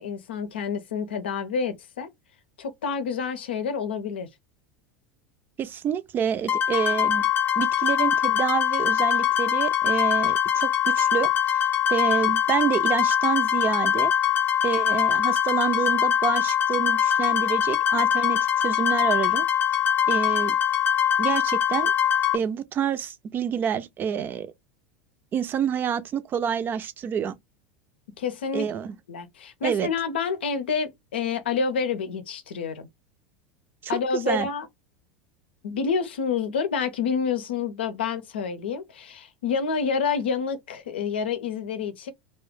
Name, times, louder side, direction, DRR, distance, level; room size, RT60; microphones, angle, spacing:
voice 1, 0.0-2.1 2.6-4.3 28.2-28.7 29.1-32.9 33.9-34.7 35.6-42.1, left 6 dB, 85° left, 0.6 m, -28 dB
voice 2, 5.6-7.3 7.6-11.6 11.9-14.1 14.6-19.4 20.1-20.6 21.2-21.9 22.3-24.5 25.3-27.3 28.5-28.9 29.6-29.9 33.8-34.0 34.3-34.5, right 8 dB, 35° right, 0.5 m, -28 dB
sound 1, 6.5-22.4, left 9 dB, 35° left, 0.7 m, -23 dB
2.4 x 2.1 x 3.5 m
hypercardioid pair, 90°, 6 cm